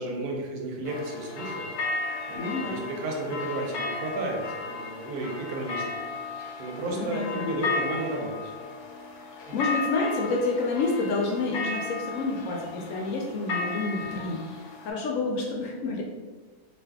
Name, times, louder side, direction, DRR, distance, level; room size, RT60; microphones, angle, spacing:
voice 1, 0.0-1.7 2.3-6.0 6.6-8.5 9.5-9.6, right 2 dB, 80° right, 0 dB, 1.1 m, -33 dB
sound 1, 0.8-14.9, left 4 dB, 85° left, 1.1 m, -34 dB
voice 2, 2.3-2.8 6.9-7.5 9.5-14.5 14.8-16.0, left 3 dB, 70° left, -1 dB, 0.8 m, -29 dB
2.5 x 2.5 x 3.4 m, 1.3 s
omnidirectional pair, 1.6 m